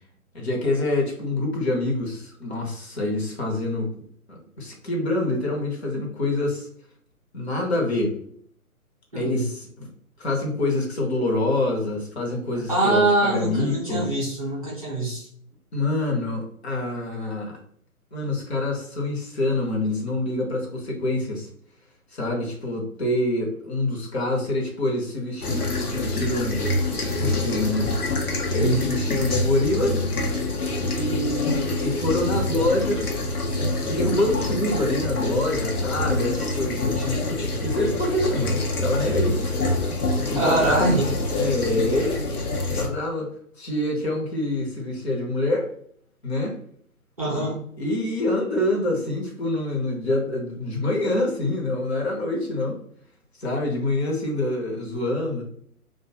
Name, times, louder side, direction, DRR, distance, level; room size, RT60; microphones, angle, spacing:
voice 1, 0.3-3.9 4.6-6.7 7.3-8.1 9.1-9.9 10.2-14.1 15.7-17.6 18.1-21.5 22.1-26.6 27.2-27.9 28.5-30.1 30.9-33.2 33.9-39.4 40.3-41.0 41.3-42.2 42.7-43.3 43.6-45.7 46.2-46.6 47.3-52.8 53.4-55.4, left 2 dB, 45° left, -1 dB, 0.7 m, -26 dB
voice 2, 9.1-9.5 12.5-15.3 28.6-28.9 40.4-41.1 47.2-47.6, right 2 dB, 25° right, -6 dB, 0.6 m, -24 dB
sound 1, 25.4-42.9, left 2 dB, 80° left, 0.7 m, -26 dB
2.5 x 2.2 x 2.7 m, 0.62 s
figure-of-eight pair, 135°, 44 cm